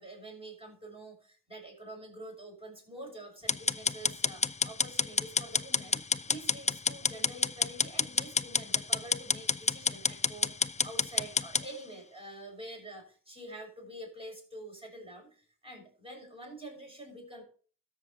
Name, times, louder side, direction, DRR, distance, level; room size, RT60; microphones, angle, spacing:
voice 1, 0.0-17.4, right 1 dB, 15° right, 0 dB, 6.5 m, -47 dB
sound 1, 3.5-11.7, left 4 dB, 20° left, 0.5 m, -29 dB
13.0 x 6.6 x 4.2 m, 0.40 s
cardioid pair, 60°, 33 cm